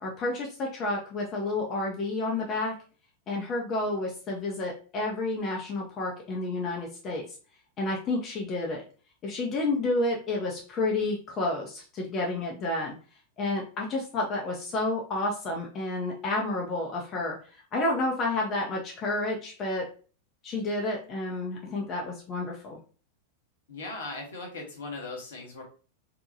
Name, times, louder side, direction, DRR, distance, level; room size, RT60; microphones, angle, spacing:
voice 1, 0.0-2.8 3.3-7.3 7.8-8.8 9.2-13.0 13.4-19.9 20.4-22.8, left 2 dB, 30° left, -1 dB, 0.5 m, -30 dB
voice 2, 23.7-25.6, left 3 dB, 65° left, 0 dB, 0.9 m, -38 dB
2.7 x 2.2 x 2.6 m, 0.38 s
figure-of-eight pair, 90°, 0 cm